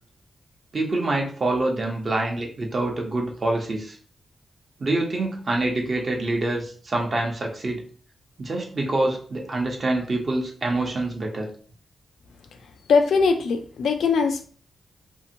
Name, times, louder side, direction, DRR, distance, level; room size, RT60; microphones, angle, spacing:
voice 1, 0.7-4.0 4.8-7.8 8.4-11.5, right 2 dB, 40° right, 0.8 m, -26 dB
voice 2, 12.9-14.5, left 5 dB, 90° left, 0.4 m, -21 dB
2.7 x 2.5 x 2.7 m
wide cardioid pair, 115°, 0 cm